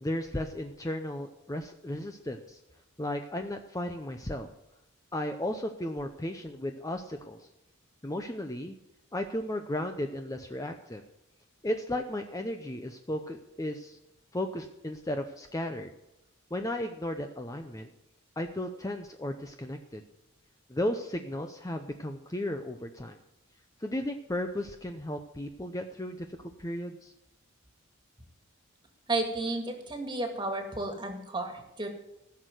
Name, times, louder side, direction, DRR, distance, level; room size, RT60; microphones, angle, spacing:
voice 1, 0.0-2.6 3.0-4.5 5.1-7.5 8.0-8.8 9.1-11.0 11.6-14.0 14.3-15.9 16.5-17.9 18.4-20.0 20.7-23.2 23.8-26.3 26.6-27.1, left 1 dB, 15° left, 6 dB, 0.6 m, -35 dB
voice 2, 29.1-31.9, right 2 dB, 20° right, 4 dB, 2.0 m, -32 dB
15.0 x 6.5 x 7.9 m, 0.89 s
head